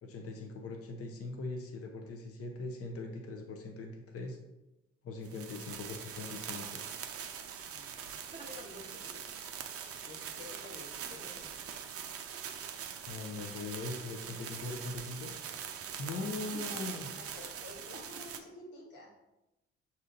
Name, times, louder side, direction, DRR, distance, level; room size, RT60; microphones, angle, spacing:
voice 1, 0.0-4.4 5.0-6.8 13.1-15.3 16.0-17.1, left 3 dB, 45° left, 3 dB, 0.7 m, -41 dB
sound 1, 5.2-18.4, right 8 dB, 45° right, 0.5 m, -43 dB
voice 2, 7.6-9.2 10.0-11.6 16.1-16.5 17.1-19.1, left 2 dB, 85° left, -4 dB, 1.1 m, -51 dB
sound 2, 8.3-9.0 10.8-11.7 12.3-12.6 13.3-13.8 14.5-14.9 16.3-17.3 17.9-18.4, right 3 dB, 20° right, 0.8 m, -54 dB
6.1 x 2.8 x 2.6 m, 0.97 s
hypercardioid pair, 45°, 32 cm